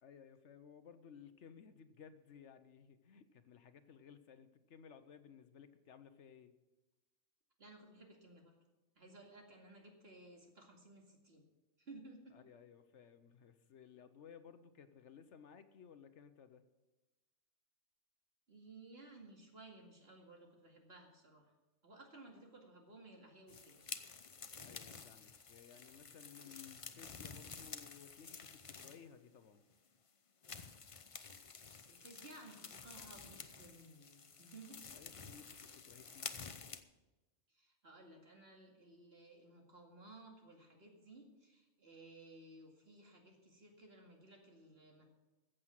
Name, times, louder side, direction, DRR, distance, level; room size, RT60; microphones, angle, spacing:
voice 1, 0.0-6.5 12.3-16.6 24.6-29.6 34.9-36.4, left 7 dB, 65° left, 11 dB, 1.0 m, -58 dB
voice 2, 7.6-8.5 9.0-11.4 11.8-12.4 18.5-21.5 21.8-23.9 31.8-34.8 37.5-45.0, right 2 dB, 50° right, 1 dB, 2.4 m, -57 dB
sound 1, 23.5-29.2 29.7-29.8 30.4-36.8, left 5 dB, 35° left, 0.5 m, -51 dB
14.5 x 7.8 x 7.4 m, 1.1 s
omnidirectional pair, 1.3 m